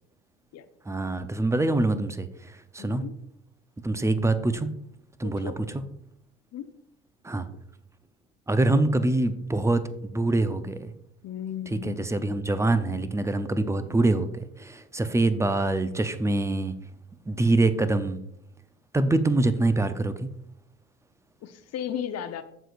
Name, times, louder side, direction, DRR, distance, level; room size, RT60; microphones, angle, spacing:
voice 1, 0.9-3.0 3.8-4.7 5.2-5.8 7.2-7.5 8.5-10.9 11.7-16.7 17.3-18.2 18.9-20.3, right 2 dB, 5° right, 12 dB, 0.6 m, -25 dB
voice 2, 2.8-3.2 5.2-5.5 6.5-6.7 11.2-12.1 21.4-22.4, left 9 dB, 40° left, 9 dB, 0.9 m, -35 dB
14.5 x 5.0 x 2.5 m, 0.76 s
figure-of-eight pair, 65°, 41 cm